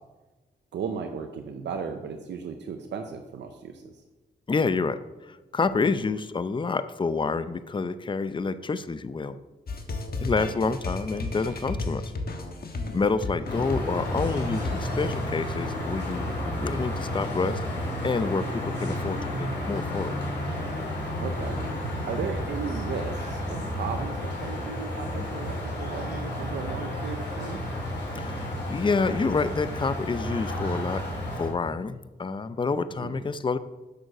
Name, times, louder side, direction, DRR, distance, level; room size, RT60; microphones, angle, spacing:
voice 1, 0.7-3.9 21.2-21.6 22.1-27.6 33.0-33.1, right 6 dB, 85° right, 5 dB, 0.6 m, -35 dB
voice 2, 4.5-9.4 10.2-12.0 12.9-20.1 28.2-31.0 31.4-33.6, left 4 dB, 30° left, 13 dB, 0.5 m, -28 dB
sound 1, 9.7-15.2, left 2 dB, 60° left, 1.2 m, -33 dB
sound 2, 13.4-31.5, left 1 dB, 75° left, 2.8 m, -31 dB
6.6 x 6.3 x 6.0 m, 1.2 s
cardioid pair, 55°, 18 cm